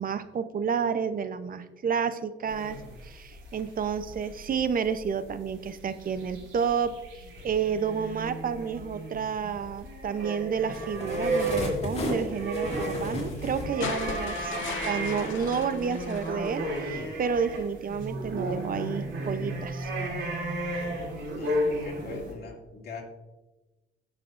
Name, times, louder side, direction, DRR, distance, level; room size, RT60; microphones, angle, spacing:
voice 1, 0.0-19.9, right 6 dB, 45° right, 12 dB, 0.7 m, -30 dB
sound 1, 2.5-22.3, right 1 dB, 80° right, 2.8 m, -34 dB
sound 2, 10.7-15.0 15.4-15.7, left 2 dB, 30° left, 2.9 m, -35 dB
sound 3, 13.8-17.1 18.4-18.5, left 9 dB, 75° left, 0.7 m, -38 dB
voice 2, 21.4-23.0, left 4 dB, 50° left, -2 dB, 2.6 m, -41 dB
17.0 x 5.9 x 2.5 m, 1.1 s
cardioid pair, 90°, 20 cm